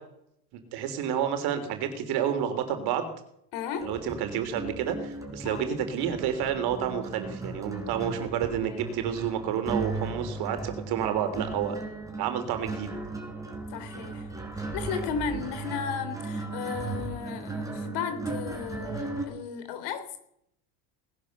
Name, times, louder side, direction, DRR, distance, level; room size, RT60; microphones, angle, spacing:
voice 1, 0.5-3.1 3.8-11.8 12.2-12.9 15.3-15.4, right 9 dB, 60° right, 8 dB, 3.6 m, -30 dB
voice 2, 3.5-3.9 5.4-5.7 8.6-8.8 13.7-20.2, left 7 dB, 60° left, 9 dB, 3.7 m, -35 dB
sound 1, 3.8-19.3, right 3 dB, 5° right, 4.6 m, -36 dB
19.0 x 10.5 x 6.8 m, 0.73 s
supercardioid pair, 105°, 44 cm